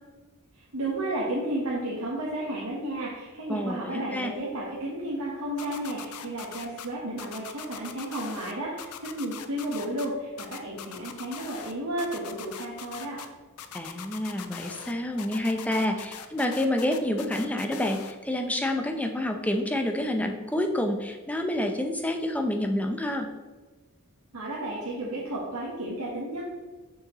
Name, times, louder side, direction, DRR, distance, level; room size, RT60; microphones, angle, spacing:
voice 1, 0.7-13.2 24.3-26.4, right 1 dB, 75° right, -5 dB, 1.2 m, -32 dB
voice 2, 3.5-4.3 13.7-23.3, left 1 dB, 5° left, 4 dB, 0.5 m, -28 dB
sound 1, 5.6-6.9 7.2-8.5 8.8-10.1 10.4-11.7 12.0-13.3 13.6-14.9 15.2-18.1, left 8 dB, 85° left, 0.5 m, -41 dB
6.8 x 6.3 x 3.0 m, 1.3 s
head